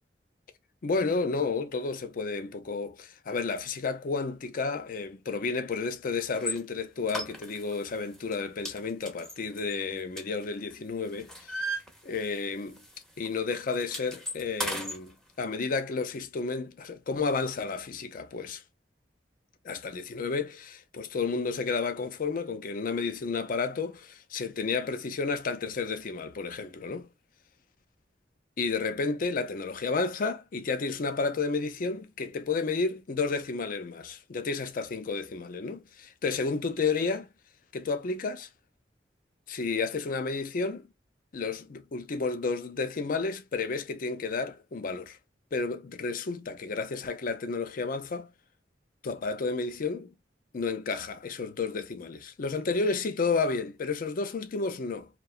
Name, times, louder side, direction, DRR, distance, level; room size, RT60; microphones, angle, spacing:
voice 1, 0.8-11.8 12.0-12.8 13.2-18.6 19.6-27.1 28.6-37.3 37.7-38.5 39.5-40.9 41.3-45.2 45.5-48.3 49.0-50.1 50.5-55.1, left 4 dB, 50° left, 0.5 m, -31 dB
sound 1, 6.3-6.6 7.1-7.8 8.1-8.4 8.7-10.7 11.0-12.5 12.8-13.0 13.2-15.0, equal, 5° left, 0.6 m, -36 dB
2.7 x 2.2 x 2.3 m
head